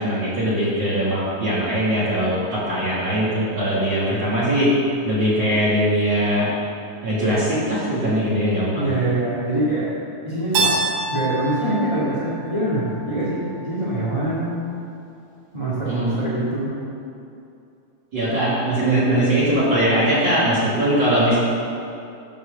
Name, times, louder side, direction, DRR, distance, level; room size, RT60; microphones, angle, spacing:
voice 1, 0.0-4.7 5.0-6.5 7.0-9.0 15.9-16.2 18.1-21.4, right 1 dB, 35° right, -10 dB, 3.3 m, -21 dB
voice 2, 8.8-9.9 10.2-10.7 11.1-14.6 15.5-16.7, right 1 dB, 10° right, -11 dB, 1.9 m, -24 dB
Keyboard (musical), 10.5-13.4, right 3 dB, 70° right, 2.9 m, -26 dB
13.0 x 5.5 x 6.7 m, 2.6 s
omnidirectional pair, 3.7 m